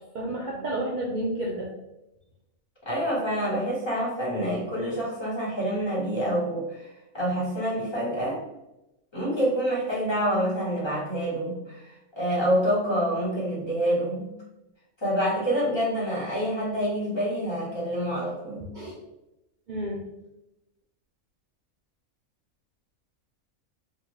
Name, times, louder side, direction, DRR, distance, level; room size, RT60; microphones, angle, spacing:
voice 1, 0.1-1.7 18.7-18.9 19.7-20.0, right 1 dB, 80° right, -3 dB, 0.4 m, -30 dB
voice 2, 2.8-8.4 9.1-11.9 12.2-14.3 15.0-18.7, equal, 20° left, -7 dB, 1.1 m, -27 dB
3.6 x 2.3 x 3.0 m, 0.93 s
omnidirectional pair, 1.4 m